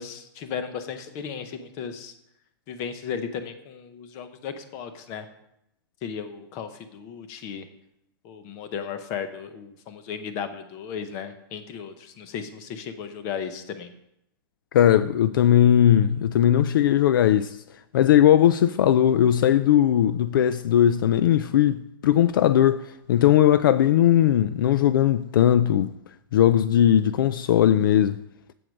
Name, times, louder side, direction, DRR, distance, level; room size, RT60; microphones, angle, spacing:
voice 1, 0.0-2.1 2.7-5.3 6.0-7.7 8.2-13.9, left 7 dB, 25° left, 0.7 m, -35 dB
voice 2, 14.7-17.6 17.9-25.9 26.3-28.2, left 11 dB, 60° left, 0.4 m, -19 dB
7.8 x 7.7 x 5.1 m
supercardioid pair, 175°, 12 cm